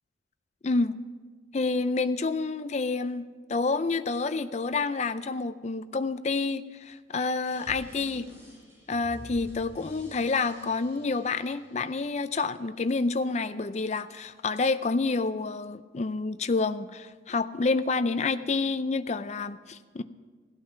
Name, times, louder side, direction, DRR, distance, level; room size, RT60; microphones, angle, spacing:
voice 1, 0.6-1.0 1.5-8.3 8.9-20.0, left 3 dB, 35° left, 12 dB, 0.4 m, -28 dB
sound 1, 7.4-12.4, left 1 dB, 15° right, 3.6 m, -49 dB
15.5 x 8.8 x 5.7 m, 1.5 s
head